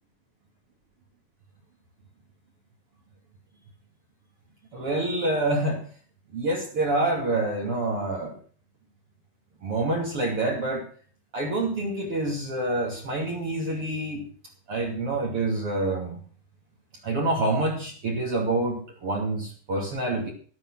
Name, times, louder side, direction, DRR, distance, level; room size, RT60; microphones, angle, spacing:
voice 1, 4.7-5.8 6.3-8.4 9.6-10.9 11.3-14.2 14.7-16.2 17.0-20.3, right 2 dB, 45° right, -1 dB, 3.4 m, -27 dB
12.5 x 11.0 x 6.2 m, 0.43 s
omnidirectional pair, 3.7 m